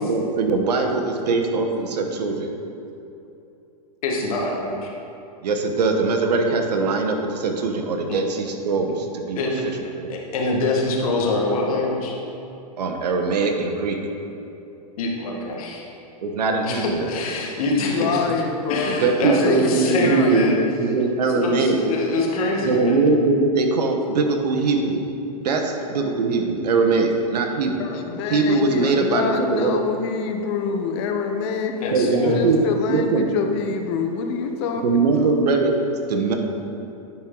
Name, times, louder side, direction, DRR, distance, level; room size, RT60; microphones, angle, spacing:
voice 1, 0.0-2.5 5.4-9.4 10.0-10.2 12.8-14.0 16.2-17.2 18.9-21.8 22.6-25.0 25.4-27.8 28.3-29.8 31.9-32.6 32.9-33.3 34.8-35.7 36.1-36.4, right 3 dB, 85° right, 4 dB, 1.0 m, -21 dB
voice 2, 4.0-4.9 8.1-8.2 9.3-9.6 10.1-12.1 15.0-15.8 16.6-18.2 18.7-20.5 21.2-23.0 31.8-32.4, left 2 dB, 60° left, -1 dB, 1.5 m, -24 dB
voice 3, 17.7-20.4 27.8-35.4, left 5 dB, 45° left, 5 dB, 0.7 m, -27 dB
9.8 x 4.4 x 3.8 m, 2.8 s
hypercardioid pair, 145°, 20 cm